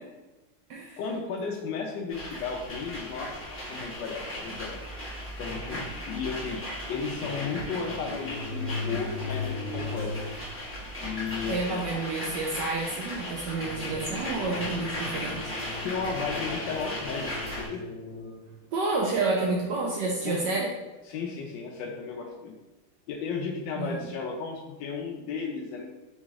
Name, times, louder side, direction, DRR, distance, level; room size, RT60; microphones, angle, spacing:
voice 1, 1.0-4.8 5.4-6.6 6.9-10.1 11.0-12.0 15.8-17.3 17.6-17.8 20.2-20.4 21.1-22.5 23.1-25.9, left 5 dB, 75° left, 0 dB, 1.1 m, -34 dB
sound 1, 2.1-17.7, left 1 dB, 15° left, 0.4 m, -37 dB
sound 2, 4.5-4.7 5.5-5.6 5.9-6.0 7.3-7.4 8.1-10.3 10.8-10.9 11.7-11.8 12.2-12.6 13.2-13.3 14.6-15.4 16.4-16.7, left 3 dB, 55° right, 1.9 m, -36 dB
sound 3, 7.2-10.6 13.6-18.6, left 3 dB, 55° left, 1.1 m, -42 dB
voice 2, 11.5-15.5 18.7-20.7 23.8-24.0, right 3 dB, 75° right, -2 dB, 1.0 m, -29 dB
3.9 x 3.1 x 3.5 m, 1.1 s
omnidirectional pair, 2.3 m